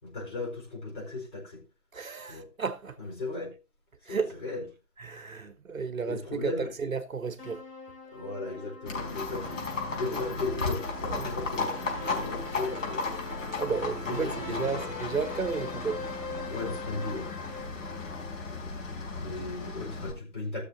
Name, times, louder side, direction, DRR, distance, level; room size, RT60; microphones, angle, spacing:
voice 1, 0.0-1.7 2.2-2.5 3.0-3.5 4.0-4.6 6.0-6.7 8.0-13.1 14.0-14.8 16.4-17.5 19.1-20.6, left 3 dB, 30° left, 4.4 m, -37 dB
voice 2, 1.9-3.0 4.0-4.3 5.0-7.6 11.1-11.3 13.6-16.0, right 5 dB, 60° right, 1.2 m, -33 dB
sound 1, 7.4-18.6, left 3 dB, 90° left, 3.7 m, -42 dB
Livestock farm animals working animals, 8.9-20.1, left 3 dB, 55° left, 4.9 m, -35 dB
18.0 x 6.7 x 2.7 m
figure-of-eight pair, 155°, 47 cm